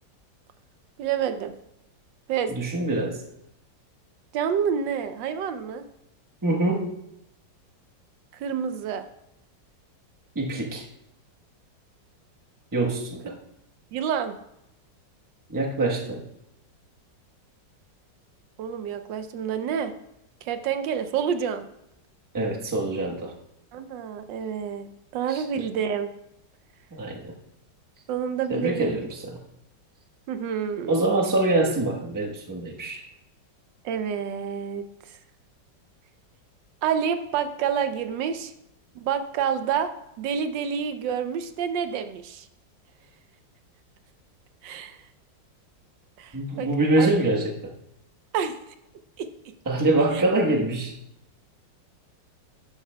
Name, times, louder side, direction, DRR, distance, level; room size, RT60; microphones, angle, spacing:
voice 1, 1.0-1.5 2.3-2.5 4.3-5.8 8.3-9.1 13.9-14.3 18.6-19.9 20.4-21.6 23.7-26.1 28.1-29.0 30.3-31.1 33.8-35.2 36.8-38.5 38.9-39.9 40.2-42.5 44.6-45.0 46.2-46.7 47.0-47.1 48.3-48.6 49.2-49.3, right 7 dB, 80° right, 9 dB, 1.3 m, -28 dB
voice 2, 2.5-3.2 6.4-6.9 10.3-10.9 12.7-13.4 15.5-16.2 22.3-23.3 25.3-25.4 26.9-27.3 28.5-29.4 30.9-33.0 46.3-47.7 49.7-50.9, right 2 dB, 15° right, -1 dB, 0.9 m, -25 dB
12.0 x 8.3 x 2.2 m, 0.83 s
omnidirectional pair, 2.0 m